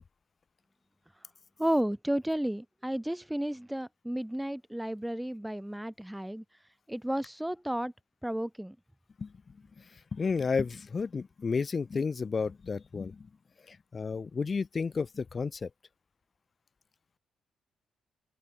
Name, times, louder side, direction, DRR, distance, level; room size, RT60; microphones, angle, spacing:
voice 1, 1.6-6.4 6.9-7.9 8.2-8.8, right 1 dB, 5° right, 2.4 m, -32 dB
voice 2, 10.1-13.3 13.7-15.7, left 5 dB, 35° left, 4.8 m, -32 dB
open air
cardioid pair, 90°, 0 cm